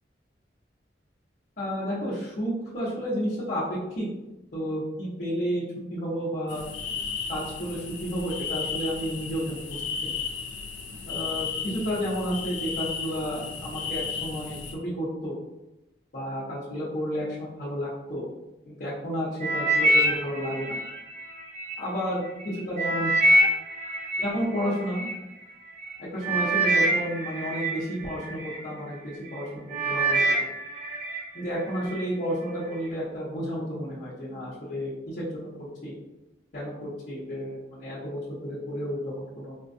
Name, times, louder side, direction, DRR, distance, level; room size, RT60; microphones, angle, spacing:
voice 1, 1.6-4.1 4.5-6.6 7.3-10.1 11.1-15.3 16.1-18.2 18.7-20.8 21.8-22.2 22.7-23.1 24.2-25.1 26.0-30.2 31.3-35.9 36.5-39.5, equal, 50° left, -9 dB, 0.8 m, -31 dB
sound 1, 6.5-14.7, left 5 dB, 85° left, 0.5 m, -34 dB
sound 2, 19.4-21.7 22.3-25.1 25.8-25.9 26.2-28.6 29.1-29.4 29.7-31.2 31.6-32.0 32.6-32.7, right 1 dB, 45° right, 0.6 m, -25 dB
4.3 x 2.2 x 2.6 m, 0.97 s
head